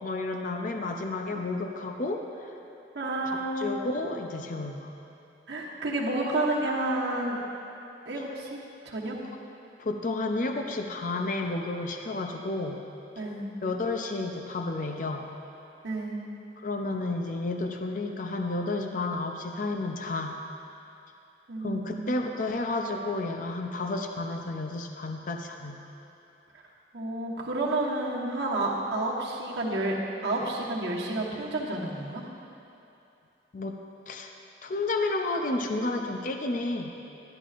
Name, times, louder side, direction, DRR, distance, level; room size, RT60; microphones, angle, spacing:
voice 1, 0.0-2.5 3.2-4.9 9.8-12.8 13.6-15.3 16.6-20.4 21.6-25.8 33.5-33.8 34.1-34.3 34.6-36.9, left 2 dB, 50° left, 4 dB, 0.5 m, -31 dB
voice 2, 2.9-3.7 5.5-7.4 8.1-8.6 8.8-9.2 13.2-13.5 15.8-16.2 21.5-22.1 26.9-30.0 30.2-32.2, right 2 dB, 75° right, -3 dB, 1.3 m, -30 dB
12.5 x 10.5 x 2.5 m, 2.8 s
head